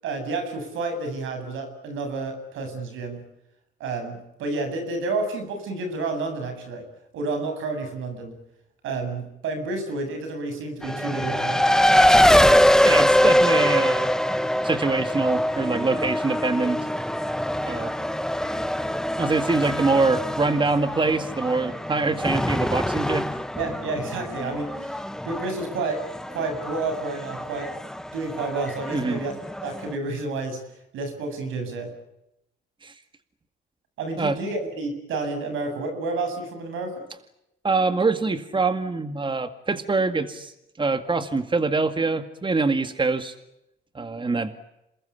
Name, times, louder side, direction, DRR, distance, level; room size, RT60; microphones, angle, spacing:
voice 1, 0.0-3.2 3.8-6.8 7.1-8.3 8.8-11.7 23.6-25.0 25.2-26.0 26.3-27.7 28.1-29.3 29.6-30.6 30.9-31.9 34.0-37.1, right 3 dB, 85° right, 7 dB, 7.9 m, -30 dB
Race car auto racing, 10.8-30.0, left 1 dB, 5° left, 1.1 m, -23 dB
voice 2, 12.8-14.1 14.6-16.8 17.6-17.9 19.2-23.4 28.9-29.2 32.8-32.9 34.2-34.4 37.6-43.3 43.9-44.5, right 3 dB, 25° right, 9 dB, 2.0 m, -24 dB
28.0 x 21.5 x 8.4 m, 0.86 s
cardioid pair, 90°, 20 cm